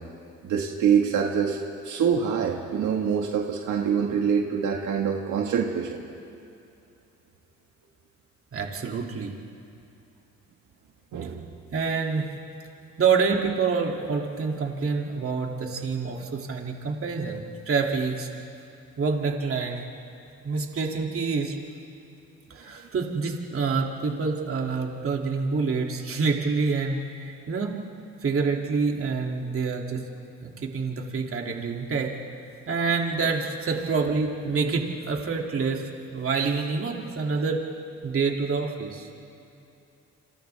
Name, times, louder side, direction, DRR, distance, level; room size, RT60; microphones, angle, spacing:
voice 1, 0.4-1.6 1.8-6.0 11.1-11.4, right 7 dB, 80° right, 1 dB, 1.8 m, -25 dB
voice 2, 8.5-9.3 11.2-11.3 11.7-12.3 13.0-18.3 19.0-19.8 20.4-21.5 22.5-27.7 28.2-30.0 30.4-32.1 32.7-37.7 38.0-39.1, right 4 dB, 45° right, 0 dB, 2.7 m, -27 dB
28.5 x 26.5 x 3.5 m, 2.7 s
cardioid pair, 90°, 30 cm